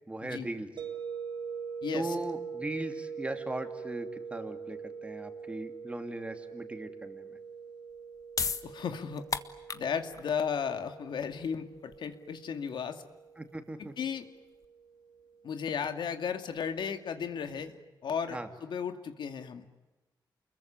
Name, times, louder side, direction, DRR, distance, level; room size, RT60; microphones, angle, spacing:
voice 1, 0.1-0.7 1.9-7.4 13.4-13.9 18.3-18.5, right 1 dB, 15° right, 7 dB, 2.7 m, -38 dB
sound 1, 0.8-15.7, right 6 dB, 90° right, 3.0 m, -43 dB
voice 2, 1.8-2.2 8.6-9.2 9.7-13.0 13.8-14.2 15.4-17.7 18.0-19.7, left 7 dB, 80° left, 8 dB, 2.4 m, -35 dB
sound 2, 7.9-14.6, left 5 dB, 45° left, 1.4 m, -39 dB
29.5 x 22.0 x 9.0 m, 1.1 s
wide cardioid pair, 135°, 8 cm